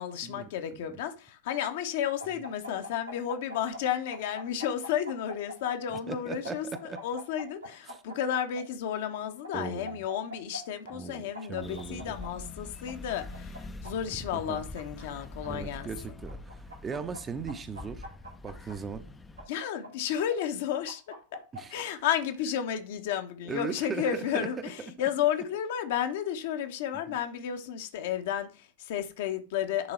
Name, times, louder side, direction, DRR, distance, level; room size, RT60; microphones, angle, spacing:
voice 1, 0.0-15.9 19.5-21.0 21.7-29.9, left 9 dB, 55° left, 1.0 m, -32 dB
sound 1, 2.2-3.8 4.1-6.0 6.4-8.6 9.4-10.6 10.9-11.0 11.3-12.3 12.9-13.9 14.5-15.5 16.3-17.2 17.5-18.8 19.4-20.4 20.9-21.8, equal, 80° right, 3.0 m, -43 dB
voice 2, 6.1-7.0 7.9-8.0 9.5-10.0 10.9-12.2 14.2-14.6 15.5-18.1 18.4-19.0 21.5-21.9 23.4-24.7 27.1-27.2, right 5 dB, 20° right, 0.7 m, -38 dB
sound 2, 11.6-19.5, left 2 dB, 15° left, 0.6 m, -45 dB
9.7 x 3.9 x 4.4 m
figure-of-eight pair, 90°, 0 cm